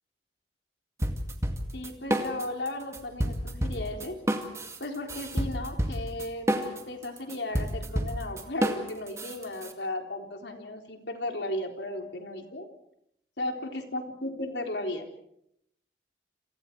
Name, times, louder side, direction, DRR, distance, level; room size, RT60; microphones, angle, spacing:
sound 1, 1.0-2.7 2.9-9.7, equal, 15° right, 2.1 m, -29 dB
voice 1, 1.7-4.2 4.8-12.7 13.4-15.1, left 1 dB, 80° left, 4 dB, 3.8 m, -35 dB
29.0 x 27.5 x 4.7 m, 0.75 s
head